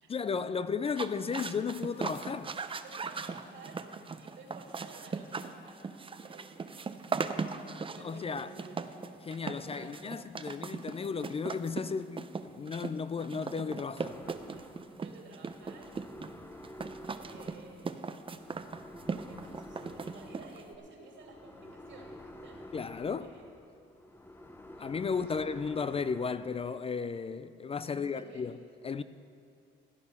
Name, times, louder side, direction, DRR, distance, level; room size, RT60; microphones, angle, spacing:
voice 1, 0.1-2.5 8.0-8.5 9.2-14.2 22.7-23.3 24.8-28.6 28.8-29.0, left 5 dB, 30° left, 0.4 m, -34 dB
sound 1, 0.8-20.7, right 4 dB, 25° right, 0.6 m, -39 dB
voice 2, 2.8-3.9 4.2-5.9 6.2-7.1 7.8-8.8 9.4-10.2 14.6-16.0 17.2-18.6 19.3-22.6 23.2-23.4 25.0-25.5 27.9-28.4, right 3 dB, 70° right, 2.7 m, -53 dB
sound 2, 14.0-26.5, left 1 dB, 10° left, 0.8 m, -50 dB
15.5 x 8.4 x 5.6 m
cardioid pair, 90°, 20 cm